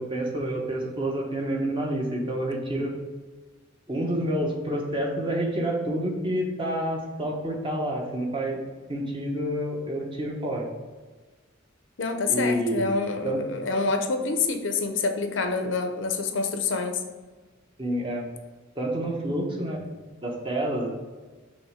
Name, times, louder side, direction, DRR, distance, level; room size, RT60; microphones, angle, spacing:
voice 1, 0.0-2.9 3.9-8.6 8.9-10.7 12.3-12.9 13.2-13.4 17.8-18.3 18.7-19.8 20.2-20.9, right 1 dB, 25° right, 0 dB, 1.1 m, -28 dB
voice 2, 12.0-17.0, left 4 dB, 70° left, 6 dB, 0.7 m, -27 dB
6.3 x 3.2 x 5.1 m, 1.3 s
head